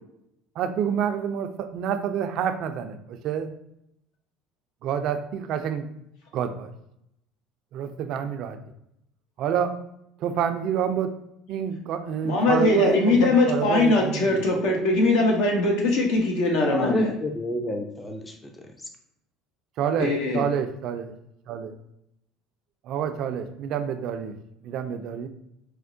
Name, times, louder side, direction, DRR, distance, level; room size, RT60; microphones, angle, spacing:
voice 1, 0.6-3.5 4.8-5.9 6.3-6.7 7.7-8.6 9.4-9.7 10.2-11.1 11.5-14.4 19.8-21.1 21.5-21.7 22.9-24.3 24.6-25.3, right 8 dB, 60° right, 8 dB, 0.3 m, -28 dB
voice 2, 12.2-17.1 20.0-20.4, left 2 dB, 75° left, 0 dB, 0.9 m, -21 dB
voice 3, 16.6-18.7, left 2 dB, 15° left, 4 dB, 0.4 m, -30 dB
4.3 x 2.1 x 2.5 m, 0.80 s
hypercardioid pair, 80°, 0 cm